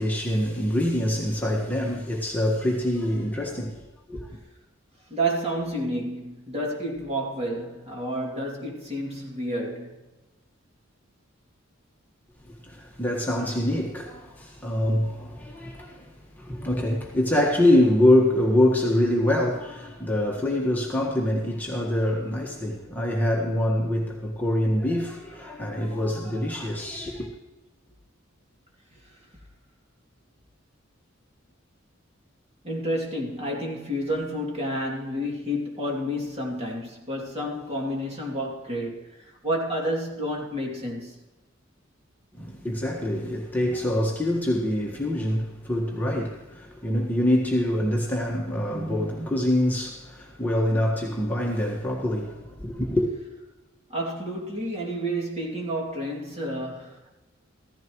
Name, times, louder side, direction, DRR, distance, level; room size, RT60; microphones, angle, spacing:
voice 1, 0.0-4.3 12.7-27.3 42.3-53.1, left 1 dB, 10° left, 1.6 m, -25 dB
voice 2, 5.1-10.0 28.9-29.2 32.6-41.2 53.9-57.1, equal, 30° right, 2.8 m, -30 dB
15.5 x 14.5 x 3.1 m
head